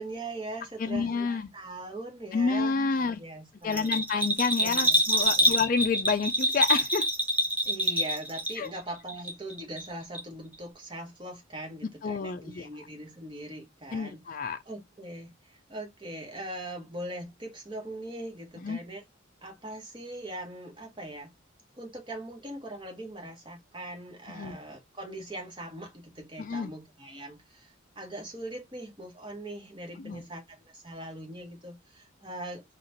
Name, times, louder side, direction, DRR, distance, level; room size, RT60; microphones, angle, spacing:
voice 1, 0.0-4.0 4.6-5.6 7.6-14.2 14.7-19.0 19.4-21.3 21.8-32.6, right 1 dB, 25° right, 1.4 m, -41 dB
voice 2, 0.8-1.5 2.3-3.2 3.6-7.1 8.6-8.7 12.0-12.7 13.9-14.6 18.6-18.8 24.3-24.6 26.4-26.7 30.0-30.2, left 5 dB, 40° left, 0.4 m, -29 dB
Bell, 3.7-8.8 9.1-9.9 10.1-10.2, right 1 dB, 10° right, 0.9 m, -26 dB
4.3 x 2.5 x 3.9 m
head